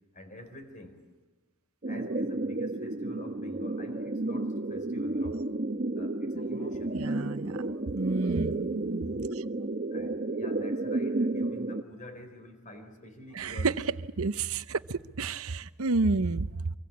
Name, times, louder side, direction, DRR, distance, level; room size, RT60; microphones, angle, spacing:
voice 1, 0.1-1.0 1.9-5.4 6.0-7.0 9.9-13.8, left 1 dB, 35° left, 4.2 m, -47 dB
sound 1, 1.8-11.8, right 2 dB, 40° right, 1.0 m, -32 dB
voice 2, 6.9-9.4 13.3-13.8 14.2-16.7, right 3 dB, 70° right, 0.8 m, -31 dB
24.5 x 24.5 x 8.6 m
head